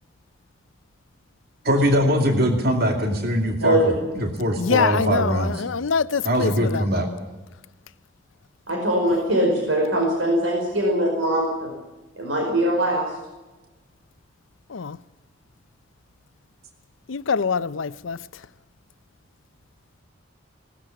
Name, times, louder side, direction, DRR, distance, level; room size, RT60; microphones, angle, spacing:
voice 1, 1.6-5.5 6.2-7.1, equal, 55° right, 2.4 m, -22 dB
voice 2, 4.6-7.0 14.7-15.0 17.1-18.2, left 5 dB, 85° left, 0.6 m, -24 dB
voice 3, 8.7-11.7 12.2-13.2, equal, 90° right, 5.2 m, -22 dB
19.5 x 13.5 x 10.0 m
head